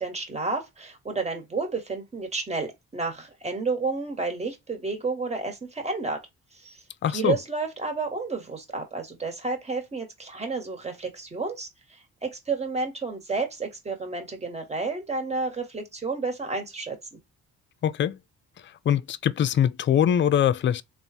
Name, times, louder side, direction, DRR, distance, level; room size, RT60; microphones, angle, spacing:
voice 1, 0.0-6.2 6.5-6.8 7.1-17.2, right 4 dB, 20° right, 1.5 m, -31 dB
voice 2, 7.0-7.3 17.8-18.1 18.9-20.8, left 9 dB, 40° left, 0.4 m, -22 dB
3.5 x 2.5 x 4.1 m
cardioid pair, 90°, 30 cm